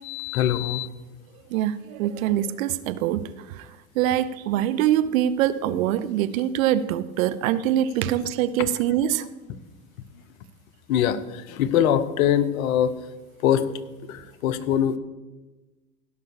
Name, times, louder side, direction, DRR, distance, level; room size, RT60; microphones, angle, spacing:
voice 1, 0.0-0.9 8.6-8.7 10.9-11.2 11.5-12.9 13.4-13.6 14.1-15.0, left 10 dB, 65° left, 13 dB, 1.0 m, -22 dB
voice 2, 1.5-3.2 4.0-9.2, right 11 dB, 60° right, 14 dB, 0.8 m, -24 dB
16.0 x 5.7 x 6.5 m, 1.2 s
hypercardioid pair, 90°, 45 cm